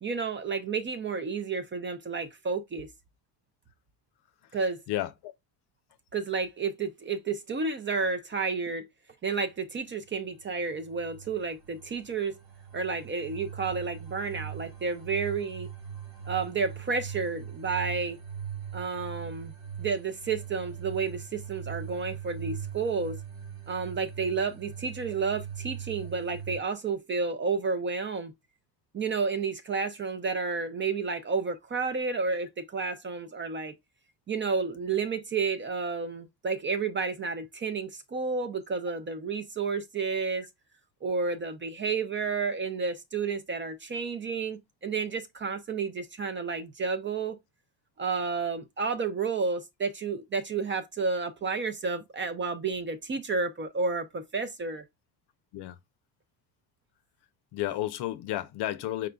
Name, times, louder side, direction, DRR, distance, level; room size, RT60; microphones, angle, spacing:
voice 1, 0.0-2.9 4.5-4.8 6.1-8.9 9.2-12.4 12.7-15.7 16.3-18.2 18.7-19.5 19.8-23.2 23.7-28.3 28.9-33.7 34.3-40.4 41.0-47.4 48.0-54.8, right 4 dB, 25° right, 0.5 m, -31 dB
voice 2, 4.9-5.3 55.5-55.8 57.5-59.1, left 14 dB, 60° left, 0.6 m, -32 dB
sound 1, 10.3-26.6, right 8 dB, 75° right, 1.6 m, -41 dB
4.6 x 3.7 x 2.2 m
supercardioid pair, 95°, 47 cm